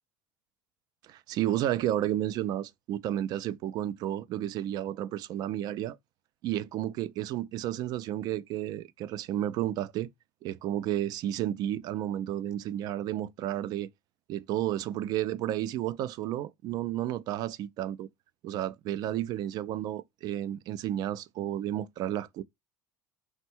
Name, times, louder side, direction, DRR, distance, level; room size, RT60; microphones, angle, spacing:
voice 1, 1.0-6.0 6.4-10.1 10.4-13.9 14.3-18.1 18.4-22.4, right 12 dB, 45° right, 0.4 m, -32 dB
4.3 x 2.2 x 4.2 m
cardioid pair, 160°, 9 cm